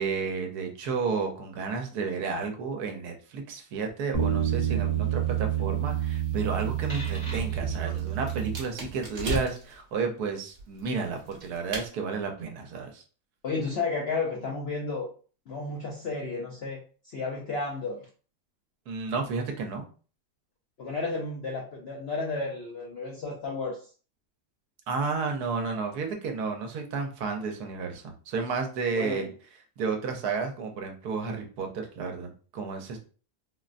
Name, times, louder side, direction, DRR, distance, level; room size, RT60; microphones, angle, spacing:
voice 1, 0.0-13.0 18.9-19.8 24.9-29.3 29.8-33.0, right 5 dB, 75° right, 4 dB, 1.1 m, -32 dB
sound 1, 4.1-9.1, right 9 dB, 20° left, 0.9 m, -28 dB
sound 2, 7.0-9.8 10.5-11.9, right 1 dB, 45° right, 0.9 m, -38 dB
voice 2, 13.4-15.1 15.5-18.1 20.8-23.8 29.0-29.3, left 3 dB, 70° left, -2 dB, 0.6 m, -32 dB
3.8 x 2.1 x 2.5 m, 0.39 s
omnidirectional pair, 1.7 m